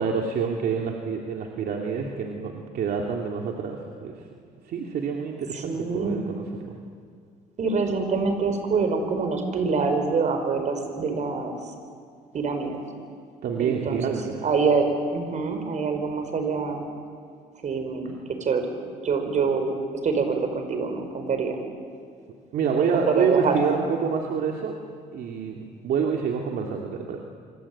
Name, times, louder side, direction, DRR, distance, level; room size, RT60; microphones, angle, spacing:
voice 1, 0.0-4.1 4.6-6.8 13.4-14.4 22.5-24.8 25.1-27.2, right 6 dB, 65° right, 1 dB, 2.8 m, -27 dB
voice 2, 5.5-6.2 7.6-11.6 12.3-12.8 13.6-14.0 14.4-16.9 17.6-18.7 19.0-19.7 20.0-21.6 22.8-23.6, right 4 dB, 45° right, 6 dB, 5.2 m, -25 dB
26.5 x 25.0 x 8.8 m, 2.2 s
cardioid pair, 110°, 17 cm